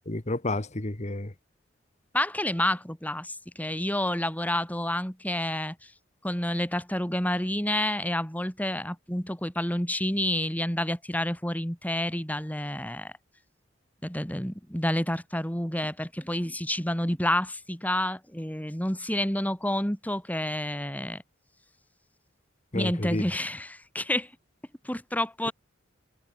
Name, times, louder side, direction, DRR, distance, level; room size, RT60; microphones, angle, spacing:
voice 1, 0.1-1.3 22.7-23.2, left 2 dB, 35° left, 1.5 m, -30 dB
voice 2, 2.1-5.8 6.2-13.1 14.0-21.2 22.7-24.3 24.8-25.5, left 1 dB, 10° left, 3.8 m, -29 dB
head